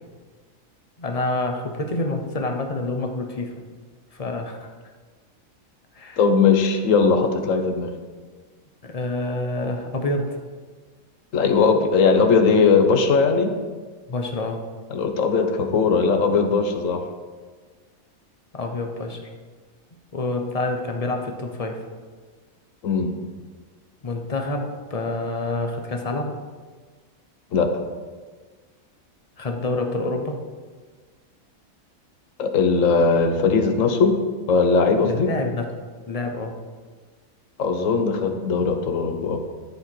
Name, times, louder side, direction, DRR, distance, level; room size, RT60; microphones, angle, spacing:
voice 1, 1.0-3.5 4.1-4.7 5.9-6.2 8.8-10.4 14.1-14.7 18.5-19.3 20.1-21.9 24.0-26.3 29.4-30.4 35.0-35.6 36.1-36.6, left 2 dB, 30° left, 3 dB, 0.9 m, -27 dB
voice 2, 6.2-7.9 11.3-13.5 14.9-17.0 22.8-23.1 27.5-27.7 32.4-34.2 34.5-35.3 37.6-39.4, left 5 dB, 70° left, 6 dB, 1.2 m, -19 dB
12.5 x 4.8 x 4.5 m, 1.4 s
omnidirectional pair, 1.4 m